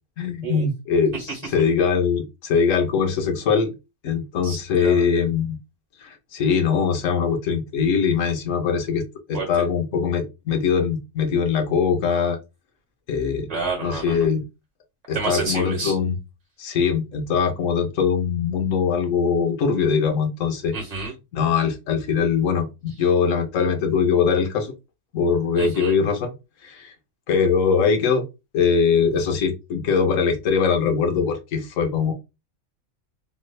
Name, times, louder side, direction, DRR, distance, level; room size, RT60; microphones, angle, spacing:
voice 1, 0.2-3.7 4.0-5.6 6.0-9.0 9.3-12.4 13.1-13.5 13.8-14.4 15.1-16.2 16.6-20.8 21.3-24.7 25.1-26.3 26.6-26.9 27.3-28.2 28.5-32.1, left 6 dB, 85° left, 5 dB, 1.1 m, -22 dB
voice 2, 4.4-5.0 9.3-9.4 13.5-14.2 15.1-15.9 20.7-21.1 25.6-25.9, right 4 dB, 30° right, 0 dB, 1.3 m, -29 dB
3.2 x 3.1 x 2.3 m, 0.25 s
omnidirectional pair, 1.3 m